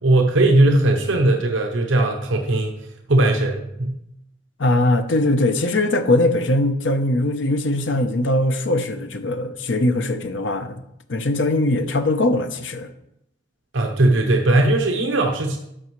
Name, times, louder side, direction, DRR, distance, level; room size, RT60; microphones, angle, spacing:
voice 1, 0.0-2.8 3.1-4.0 13.7-15.6, right 2 dB, 70° right, 3 dB, 0.9 m, -18 dB
voice 2, 4.6-10.8 11.1-12.9, left 2 dB, 65° left, 8 dB, 0.7 m, -21 dB
12.5 x 5.4 x 3.1 m, 0.78 s
head